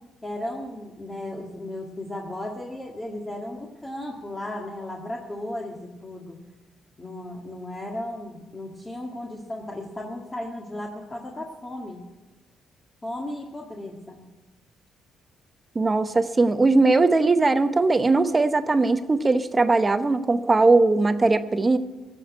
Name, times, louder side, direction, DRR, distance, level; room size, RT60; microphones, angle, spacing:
voice 1, 0.2-6.4 7.0-12.0 13.0-14.2, left 1 dB, 20° left, -2 dB, 1.8 m, -35 dB
voice 2, 15.7-21.8, right 3 dB, 25° right, 10 dB, 0.8 m, -20 dB
15.0 x 6.3 x 9.6 m, 1.1 s
cardioid pair, 90°, 0 cm